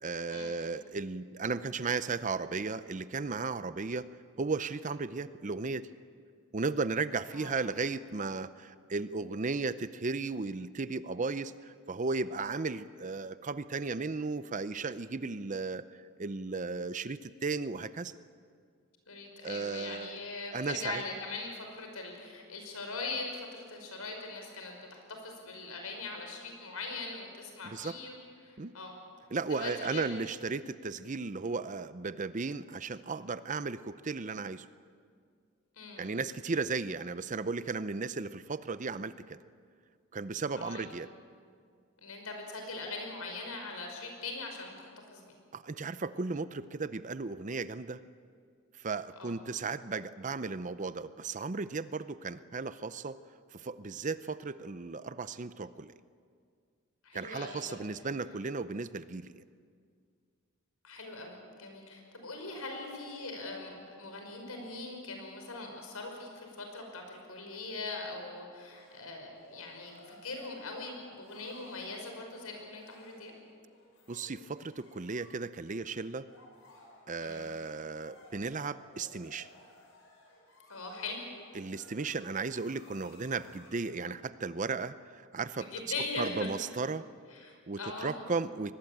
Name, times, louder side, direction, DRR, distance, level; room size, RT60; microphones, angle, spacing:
voice 1, 0.0-4.1 4.4-5.9 6.5-15.9 16.2-18.1 19.4-20.2 20.5-21.0 27.6-27.9 28.6-28.7 29.3-34.7 36.0-39.4 40.1-41.1 45.5-48.0 48.7-53.2 53.5-55.9 57.1-59.4 74.1-76.3 77.1-79.5 81.5-85.7 86.2-87.0 87.7-88.7, right 4 dB, 35° right, 14 dB, 0.6 m, -35 dB
voice 2, 19.1-28.9 29.5-30.2 35.8-36.2 40.6-40.9 42.0-45.3 49.2-49.3 57.0-57.8 60.8-73.3 77.2-77.5 80.7-81.3 85.6-86.5 87.3-88.1, left 3 dB, 80° left, 3 dB, 5.6 m, -41 dB
sound 1, 68.7-84.0, left 2 dB, 65° left, 5.9 m, -58 dB
23.5 x 20.0 x 8.7 m, 2.1 s
head